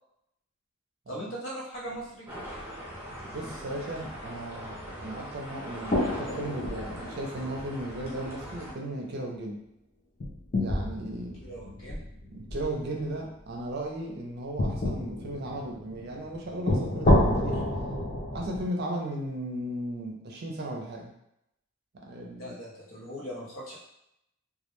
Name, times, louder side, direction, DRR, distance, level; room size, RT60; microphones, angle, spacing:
voice 1, 1.1-2.3 11.4-12.0 22.3-23.7, equal, 75° left, -4 dB, 0.8 m, -39 dB
sound 1, 1.9-2.0 2.5-2.6 5.9-8.3 8.6-8.7 10.2-13.0 14.6-18.6, left 1 dB, 40° left, 0.4 m, -29 dB
sound 2, 2.3-8.7, equal, 10° right, 0.6 m, -41 dB
voice 2, 3.3-9.6 10.5-11.4 12.3-17.6 18.3-21.1 21.9-22.5, right 1 dB, 55° right, 0 dB, 0.5 m, -36 dB
2.2 x 2.1 x 3.0 m, 0.81 s
head